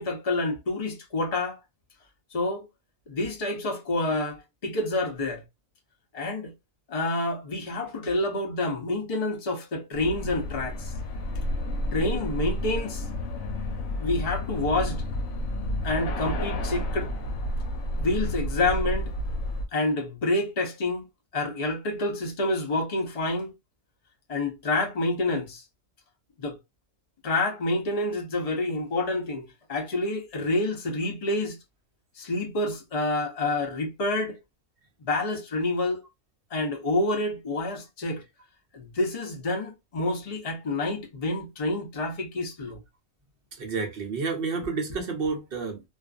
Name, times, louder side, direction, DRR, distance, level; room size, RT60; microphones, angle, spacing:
voice 1, 0.0-1.6 2.3-2.6 3.1-5.4 6.1-6.5 6.9-10.9 11.9-13.0 14.0-15.0 15.8-17.1 18.0-19.1 19.7-21.1 21.3-23.5 24.3-25.6 26.4-26.6 27.2-31.6 32.2-34.4 35.0-36.0 36.5-38.2 38.7-42.8, left 2 dB, 50° left, 0.4 m, -28 dB
sound 1, 9.9-19.6, left 1 dB, 70° left, 1.0 m, -31 dB
voice 2, 43.6-45.8, right 4 dB, 55° right, 0.6 m, -30 dB
2.5 x 2.4 x 2.3 m
omnidirectional pair, 1.6 m